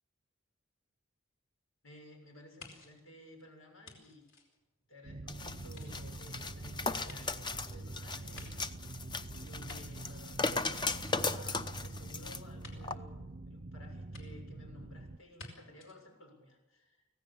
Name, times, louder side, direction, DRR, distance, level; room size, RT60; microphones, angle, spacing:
voice 1, 1.8-4.2 4.9-8.6 9.3-17.0, left 1 dB, 85° left, 3 dB, 6.7 m, -55 dB
sound 1, 2.6-5.2 5.6-9.0 9.4-10.5 10.8-11.7 12.6-12.8 14.1-14.2 15.4-15.5 15.8-16.0, left 2 dB, 65° left, 4.5 m, -53 dB
sound 2, 5.0-15.2, right 2 dB, 40° right, 0.7 m, -45 dB
sound 3, 5.3-12.4 12.8-13.0, left 3 dB, 20° left, 0.8 m, -37 dB
25.0 x 17.0 x 7.2 m, 1.1 s
head